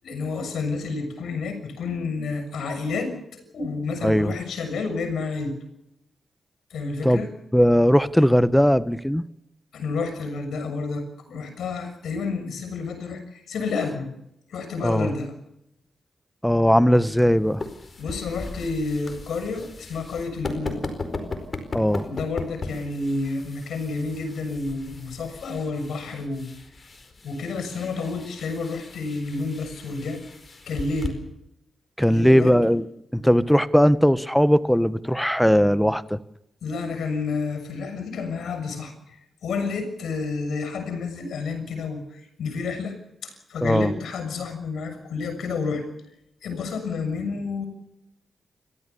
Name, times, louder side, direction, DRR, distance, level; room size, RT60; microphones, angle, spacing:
voice 1, 0.0-3.1 3.5-5.6 6.7-7.3 9.7-14.1 14.5-15.3 18.0-20.8 22.0-26.5 27.2-30.2 30.7-31.2 32.1-32.8 36.6-38.9 39.4-43.0 43.2-45.8 46.4-47.6, left 4 dB, 80° left, 6.6 m, -30 dB
voice 2, 7.5-9.2 14.8-15.1 16.4-17.6 21.7-22.1 32.0-32.8 33.1-36.2 43.6-43.9, equal, 5° left, 1.2 m, -19 dB
sound 1, 17.1-31.1, left 3 dB, 45° left, 4.6 m, -37 dB
30.0 x 13.5 x 7.0 m
supercardioid pair, 50°, 0 cm